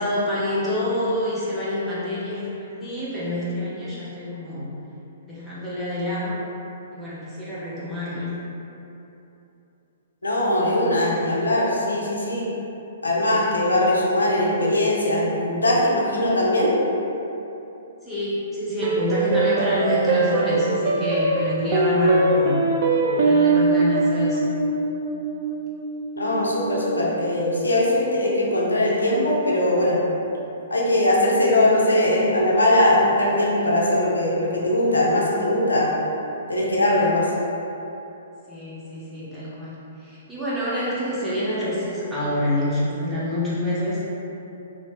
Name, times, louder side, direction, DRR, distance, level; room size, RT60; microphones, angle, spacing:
voice 1, 0.0-4.7 5.2-6.3 6.9-8.3 18.0-22.6 23.2-24.5 38.5-39.7 40.0-44.1, left 1 dB, 5° right, -11 dB, 1.0 m, -27 dB
voice 2, 10.2-12.5 13.0-16.7 26.2-30.0 30.7-35.9 36.5-37.3, left 1 dB, 85° left, -4 dB, 0.6 m, -20 dB
sound 1, 18.8-27.4, right 3 dB, 50° right, 0.4 m, -22 dB
2.9 x 2.8 x 3.2 m, 2.9 s
figure-of-eight pair, 120°, 0 cm